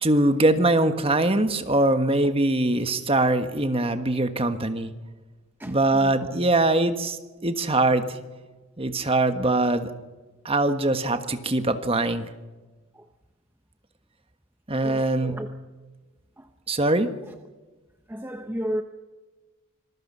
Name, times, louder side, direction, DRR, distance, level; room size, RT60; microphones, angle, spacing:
voice 1, 0.0-4.9 5.6-8.2 8.8-9.9 10.4-12.3 14.7-15.3 16.7-17.1, right 2 dB, 25° right, 8 dB, 1.5 m, -22 dB
voice 2, 6.0-6.3 13.0-13.1 14.8-15.5 16.4-16.5 18.1-18.8, equal, 10° right, 6 dB, 0.9 m, -33 dB
26.0 x 21.0 x 5.6 m, 1.2 s
head